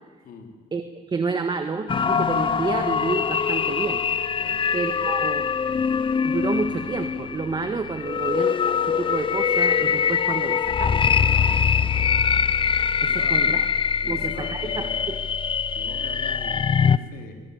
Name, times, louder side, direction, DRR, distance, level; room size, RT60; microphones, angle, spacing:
voice 1, 0.2-0.6 4.4-5.4 8.0-8.3 13.0-13.7 14.0-15.1 15.7-17.4, left 5 dB, 60° left, 3 dB, 4.5 m, -42 dB
voice 2, 1.1-4.0 4.7-5.5 6.2-11.0 13.0-13.6 14.1-15.2, right 4 dB, 25° right, 7 dB, 1.6 m, -29 dB
sound 1, 1.9-17.0, left 6 dB, 30° left, 0.7 m, -23 dB
23.5 x 22.5 x 8.8 m, 1.4 s
cardioid pair, 110°, 17 cm